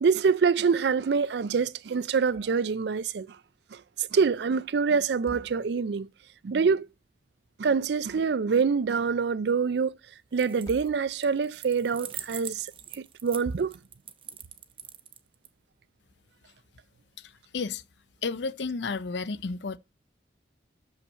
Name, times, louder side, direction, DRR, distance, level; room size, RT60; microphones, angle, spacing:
voice 1, 0.0-3.3 3.7-6.1 6.4-6.9 7.6-9.9 10.3-12.7 12.9-13.7, right 5 dB, 65° right, 0.4 m, -25 dB
sound 1, 2.3-2.8 3.1-3.2 5.0-6.1 7.8-8.6 10.5-11.4, equal, 20° left, 1.1 m, -50 dB
sound 2, 10.3-10.9 11.2-15.5, right 9 dB, 30° right, 0.7 m, -42 dB
voice 2, 18.2-19.8, left 4 dB, 70° left, 0.6 m, -31 dB
7.0 x 5.6 x 6.3 m
head